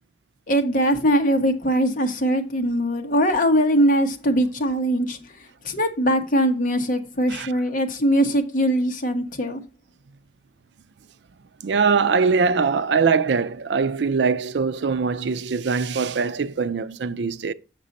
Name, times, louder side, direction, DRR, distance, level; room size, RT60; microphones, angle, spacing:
voice 1, 0.5-9.6, equal, 50° left, 1.2 m, -21 dB
voice 2, 11.6-17.5, right 5 dB, 80° right, 0.5 m, -22 dB
7.7 x 5.9 x 4.0 m
head